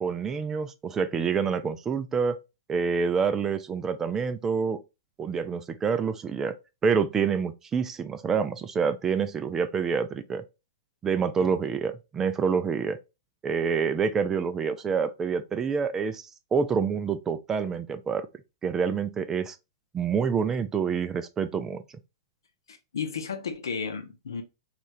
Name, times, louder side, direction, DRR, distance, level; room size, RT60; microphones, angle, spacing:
voice 1, 0.0-2.4 2.7-4.8 5.2-6.6 6.8-10.4 11.0-13.0 13.4-18.3 18.6-19.6 19.9-21.8, right 6 dB, 20° right, 0.3 m, -27 dB
voice 2, 22.7-24.4, left 6 dB, 85° left, 0.7 m, -33 dB
3.1 x 2.4 x 2.6 m
hypercardioid pair, 130°, 2 cm